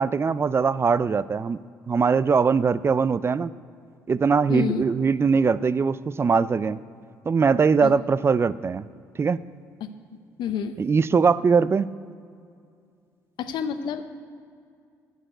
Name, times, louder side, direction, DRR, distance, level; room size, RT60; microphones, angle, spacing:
voice 1, 0.0-1.6 1.9-3.5 4.1-6.8 7.3-8.9 9.2-9.4 10.8-11.9, right 5 dB, 35° right, 17 dB, 0.4 m, -21 dB
voice 2, 4.5-4.8 7.8-7.9 10.4-10.8 13.4-14.0, left 7 dB, 70° left, 10 dB, 0.8 m, -28 dB
11.0 x 6.6 x 7.9 m, 2.3 s
supercardioid pair, 65°, 8 cm